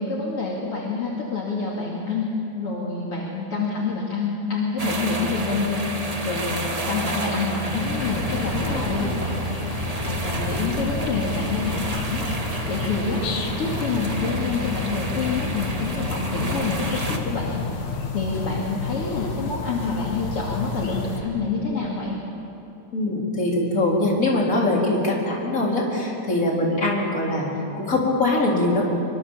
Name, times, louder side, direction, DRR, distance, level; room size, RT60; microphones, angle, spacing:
voice 1, 0.0-2.3 2.5-9.7 10.0-12.3 12.7-13.2 13.6-17.6 18.1-22.2, left 4 dB, 50° left, -3 dB, 3.1 m, -27 dB
sound 1, 4.8-17.2, right 2 dB, 35° right, 0.5 m, -30 dB
sound 2, 7.7-21.2, left 4 dB, 80° left, 3.4 m, -31 dB
voice 2, 8.5-9.2 22.9-27.5 27.8-28.8, left 2 dB, 25° left, -3 dB, 4.3 m, -23 dB
24.5 x 24.0 x 7.4 m, 2.9 s
omnidirectional pair, 3.4 m